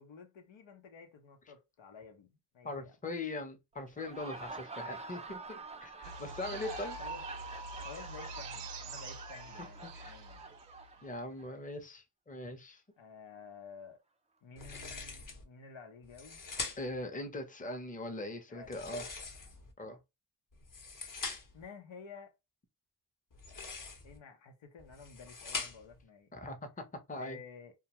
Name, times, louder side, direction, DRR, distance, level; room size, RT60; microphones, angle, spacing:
voice 1, 0.0-2.9 6.4-7.2 7.8-10.5 10.9-11.0 13.0-14.0 14.4-16.4 18.5-19.0 21.5-22.3 24.0-26.3 27.2-27.7, left 5 dB, 90° left, 0.8 m, -52 dB
voice 2, 2.6-7.0 9.8-10.2 11.0-12.8 16.8-19.0 19.8-20.0 26.3-27.4, left 2 dB, 20° left, 0.6 m, -41 dB
Laughter, 3.9-11.5, right 3 dB, 15° right, 0.3 m, -46 dB
sound 1, 6.0-11.2, right 3 dB, 65° right, 0.6 m, -47 dB
sound 2, 14.6-15.4 16.0-17.0 18.6-19.7 20.5-21.6 23.3-24.2 24.8-26.0, left 4 dB, 45° left, 0.9 m, -43 dB
2.3 x 2.2 x 2.8 m
cardioid pair, 55°, 45 cm